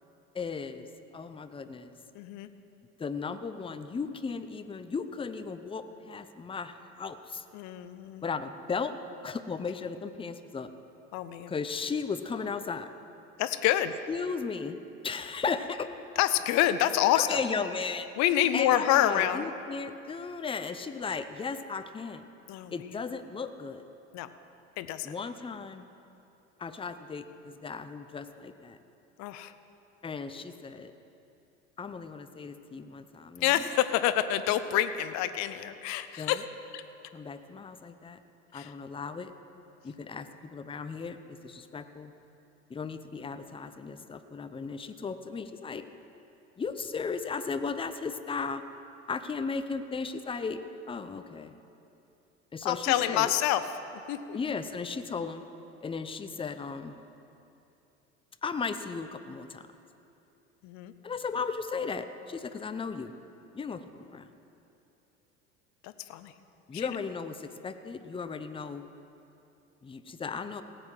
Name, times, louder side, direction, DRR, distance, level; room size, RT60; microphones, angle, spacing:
voice 1, 0.3-0.9 1.1-1.9 3.0-7.4 8.2-8.9 9.2-10.7 11.5-12.9 14.1-14.8 15.0-15.9 17.1-18.1 18.5-22.3 22.7-23.8 25.0-25.9 26.6-28.8 30.0-30.9 31.8-33.7 36.2-36.4 37.1-38.2 38.5-39.3 39.8-42.1 42.7-45.8 46.6-48.6 49.1-50.6 50.9-51.5 52.5-53.3 54.3-55.4 55.8-56.9 58.4-59.6 61.0-63.1 63.5-64.3 66.7-68.9 69.8-70.6, left 5 dB, 15° left, 10 dB, 0.7 m, -36 dB
voice 2, 2.1-2.5 7.5-8.3 11.1-11.5 13.4-13.9 16.2-17.4 18.2-19.5 22.5-22.7 24.1-24.3 24.8-25.1 29.2-29.5 33.4-36.4 36.7-36.8 38.5-38.7 52.6-53.6 54.1-54.4 60.6-60.9 65.8-66.3 66.7-66.9, left 12 dB, 50° left, 12 dB, 0.7 m, -27 dB
17.5 x 7.9 x 4.7 m, 2.8 s
hypercardioid pair, 65°, 35 cm